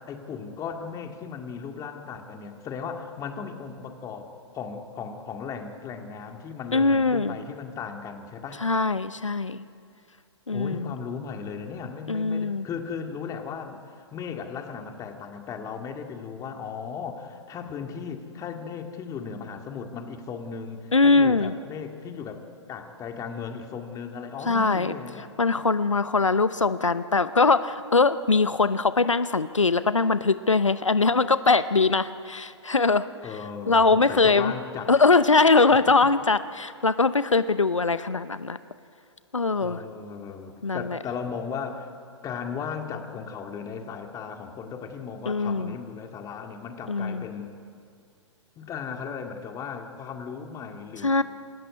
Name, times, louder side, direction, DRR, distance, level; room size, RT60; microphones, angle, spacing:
voice 1, 0.1-4.3 4.5-8.6 10.5-25.3 33.2-35.0 39.6-41.9 42.2-47.5 48.6-51.2, left 6 dB, 20° left, 4 dB, 2.2 m, -36 dB
voice 2, 6.7-7.4 8.6-9.6 10.5-10.9 12.1-12.7 20.9-21.5 24.5-24.9 25.4-33.1 33.7-34.5 34.9-38.6 39.3-39.8 40.6-41.0 45.3-45.7 46.9-47.3 51.0-51.2, left 3 dB, 90° left, 14 dB, 0.7 m, -22 dB
27.0 x 13.5 x 9.6 m, 2.4 s
figure-of-eight pair, 115°, 16 cm